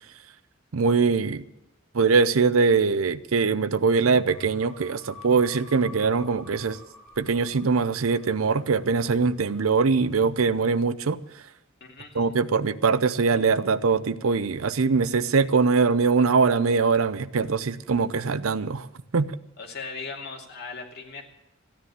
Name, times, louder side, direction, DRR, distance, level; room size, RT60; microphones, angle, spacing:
voice 1, 0.7-1.4 1.9-6.8 7.2-11.2 12.1-18.9 19.1-19.4, right 4 dB, 90° right, 0.6 m, -22 dB
sound 1, 4.3-10.6, left 2 dB, 5° left, 5.9 m, -50 dB
voice 2, 11.8-12.3 19.6-21.2, left 4 dB, 55° left, 2.5 m, -38 dB
14.5 x 10.5 x 8.2 m
head